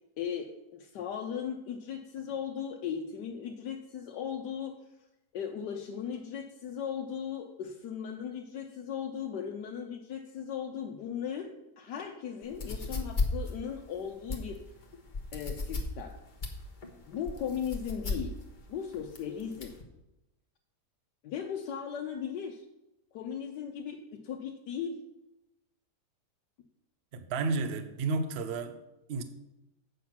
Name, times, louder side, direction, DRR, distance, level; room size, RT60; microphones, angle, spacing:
voice 1, 0.2-4.7 5.3-14.6 15.3-16.1 17.1-18.3 18.7-19.7 21.2-22.6 23.1-25.0, left 8 dB, 80° left, 2 dB, 1.4 m, -37 dB
sound 1, 12.4-19.8, left 3 dB, 35° left, 1.1 m, -35 dB
voice 2, 27.1-28.8 29.1-29.2, right 3 dB, 50° right, 9 dB, 0.8 m, -31 dB
8.2 x 5.9 x 5.8 m, 0.93 s
omnidirectional pair, 1.8 m